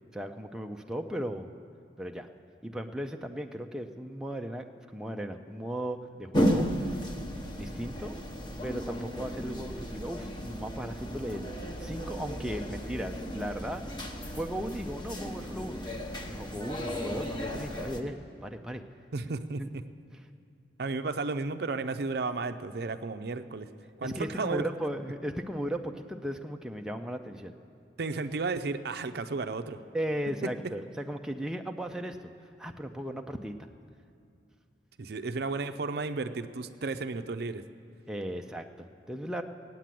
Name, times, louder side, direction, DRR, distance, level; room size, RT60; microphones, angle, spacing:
voice 1, 0.1-1.5 2.0-2.3 2.6-4.6 4.9-6.7 7.6-8.2 8.6-13.8 14.4-15.8 16.3-18.8 19.6-19.7 20.1-20.2 24.0-27.5 29.9-32.3 32.6-33.5 38.1-39.4, equal, 5° right, 3 dB, 0.4 m, -36 dB
sound 1, 6.3-18.0, equal, 25° left, 1.0 m, -34 dB
voice 2, 19.1-19.8 20.8-23.7 24.0-24.6 28.0-29.8 35.0-37.6, right 3 dB, 60° right, 9 dB, 0.5 m, -33 dB
17.5 x 9.2 x 7.6 m, 2.5 s
head